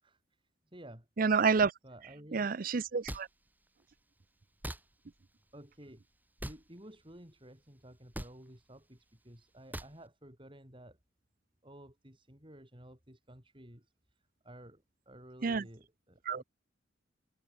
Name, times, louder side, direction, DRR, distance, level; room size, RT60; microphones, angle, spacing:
voice 1, 0.0-1.1 1.8-2.5 5.5-6.0 6.4-11.0 11.6-16.4, right 1 dB, 25° right, 5.7 m, -53 dB
voice 2, 1.2-1.7 2.3-3.3 15.4-15.6 16.3-16.4, right 5 dB, 50° right, 0.5 m, -28 dB
sound 1, 3.1-3.2 4.6-4.8 6.4-6.6 8.1-8.3 9.7-9.9, right 1 dB, 10° right, 1.5 m, -40 dB
head